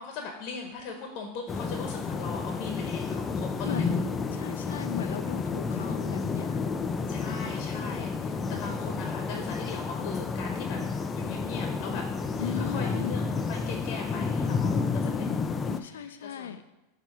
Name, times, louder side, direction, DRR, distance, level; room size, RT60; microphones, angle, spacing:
voice 1, 0.0-4.1 7.1-12.1 12.3-16.6, left 4 dB, 50° left, 3 dB, 1.0 m, -40 dB
sound 1, 1.5-15.8, left 4 dB, 20° left, 0.4 m, -30 dB
voice 2, 3.6-4.0 4.3-6.6 12.4-13.1 15.7-16.6, left 9 dB, 85° left, 10 dB, 0.5 m, -37 dB
7.1 x 2.8 x 5.6 m, 1.0 s
hypercardioid pair, 115°, 0 cm